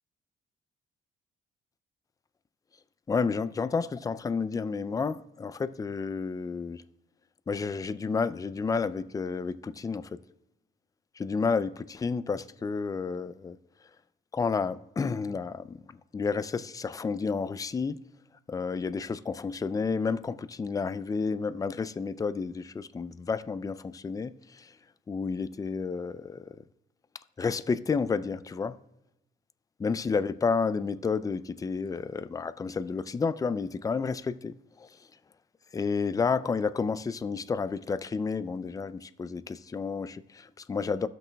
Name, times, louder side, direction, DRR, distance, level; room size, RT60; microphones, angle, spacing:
voice 1, 3.1-6.8 7.5-10.2 11.2-13.6 14.3-15.8 16.1-18.0 18.5-24.7 25.1-26.6 27.4-28.8 29.8-34.5 34.8-34.9 35.7-41.1, left 5 dB, 20° left, 0.3 m, -31 dB
14.5 x 6.1 x 2.2 m
cardioid pair, 90°, 20 cm